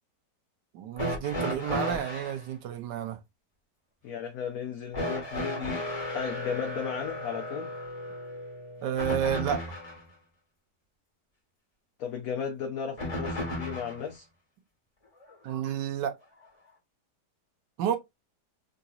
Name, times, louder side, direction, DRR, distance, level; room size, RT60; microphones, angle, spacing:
voice 1, 0.7-3.2 8.8-9.7 15.4-16.1 17.8-18.0, right 9 dB, 80° right, 1.3 m, -30 dB
sound 1, 1.0-2.4 4.9-10.0 13.0-14.0 15.3-15.4 16.4-16.5, left 1 dB, 25° left, 1.3 m, -34 dB
voice 2, 4.0-7.7 12.0-14.2, left 7 dB, 65° left, 1.0 m, -35 dB
3.9 x 2.7 x 2.3 m
omnidirectional pair, 1.8 m